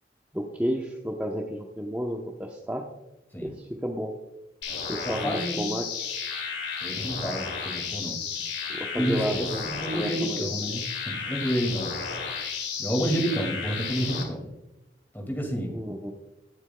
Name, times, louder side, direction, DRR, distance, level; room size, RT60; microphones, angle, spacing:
voice 1, 0.3-2.9 3.4-4.1 4.9-6.2 8.7-10.5 15.7-16.1, equal, 10° right, 1 dB, 0.7 m, -32 dB
sound 1, 4.6-14.2, left 6 dB, 85° left, 2.3 m, -33 dB
voice 2, 5.0-5.7 6.8-8.2 8.9-11.9 12.8-14.5 15.1-15.8, right 1 dB, 10° left, 1 dB, 2.0 m, -30 dB
19.0 x 8.1 x 2.2 m, 0.94 s
head